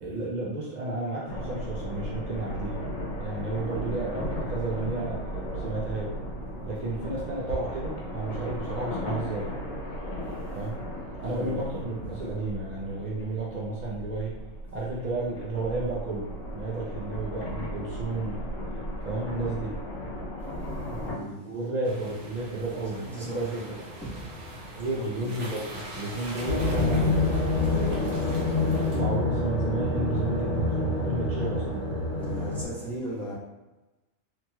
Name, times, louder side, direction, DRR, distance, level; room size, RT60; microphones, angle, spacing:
voice 1, 0.0-2.8 3.2-5.2 5.5-6.1 6.6-9.6 10.5-10.8 11.2-14.4 14.7-18.5 19.0-19.8 20.8-21.0 21.4-23.8 24.8-27.3 28.7-32.0 32.7-32.9, right 2 dB, 85° right, -5 dB, 0.4 m, -32 dB
sound 1, 1.3-21.2, equal, 80° left, 1.1 m, -36 dB
voice 2, 11.2-12.1 20.6-21.4 22.7-23.7 24.0-24.7 25.0-25.3 27.6-29.3 32.2-33.3, right 1 dB, ahead, -10 dB, 0.8 m, -38 dB
sound 2, 21.8-29.0, right 1 dB, 65° right, 1.2 m, -42 dB
sound 3, 26.5-32.6, left 2 dB, 65° left, 1.2 m, -26 dB
3.0 x 2.8 x 2.2 m, 1.1 s
omnidirectional pair, 1.4 m